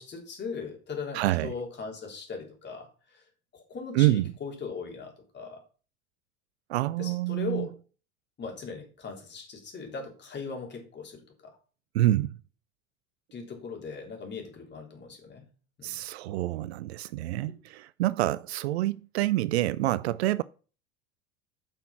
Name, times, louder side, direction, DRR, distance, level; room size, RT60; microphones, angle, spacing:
voice 1, 0.0-3.2 3.5-5.6 7.0-7.7 8.4-11.6 13.3-15.4 15.8-16.0, left 5 dB, 25° left, 3.5 m, -39 dB
voice 2, 1.1-1.5 3.9-4.3 6.7-7.7 11.9-12.3 15.8-20.4, right 16 dB, 60° right, 0.5 m, -27 dB
9.1 x 5.9 x 5.9 m
figure-of-eight pair, 75°, 38 cm